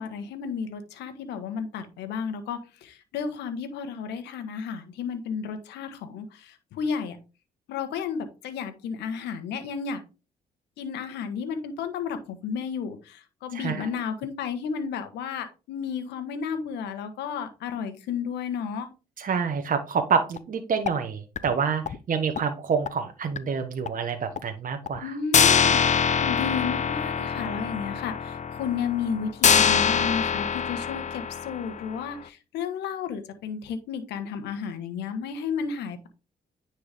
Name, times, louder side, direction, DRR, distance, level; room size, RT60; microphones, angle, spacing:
voice 1, 0.0-7.2 7.7-10.0 10.8-18.9 25.0-25.8 26.2-36.1, left 6 dB, 85° left, 8 dB, 1.4 m, -32 dB
voice 2, 13.5-13.9 19.2-25.2, right 6 dB, 50° right, 6 dB, 1.2 m, -27 dB
sound 1, 20.4-20.5 20.9-21.0 21.4-21.5 21.9-22.0 22.4-22.5 22.9-23.0 23.4-23.5 23.9-24.0 24.4-24.5 24.9-25.0 25.3-32.0, left 7 dB, 45° left, 0.7 m, -24 dB
9.8 x 4.6 x 3.5 m, 0.30 s
supercardioid pair, 55°, 17 cm